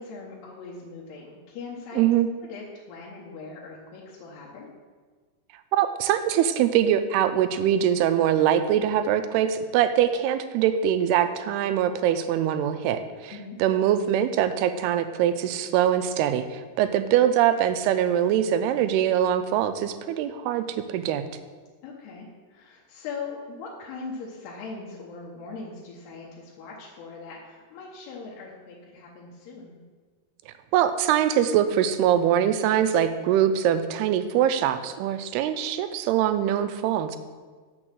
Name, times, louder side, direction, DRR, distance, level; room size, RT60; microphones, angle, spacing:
voice 1, 0.0-2.1 2.4-4.7 13.3-13.6 21.8-29.8, left 4 dB, 80° left, -4 dB, 3.0 m, -40 dB
voice 2, 2.0-2.3 5.7-13.3 13.6-21.2 30.7-37.2, right 10 dB, 85° right, 10 dB, 2.5 m, -23 dB
6.8 x 6.2 x 7.4 m, 1.5 s
omnidirectional pair, 4.7 m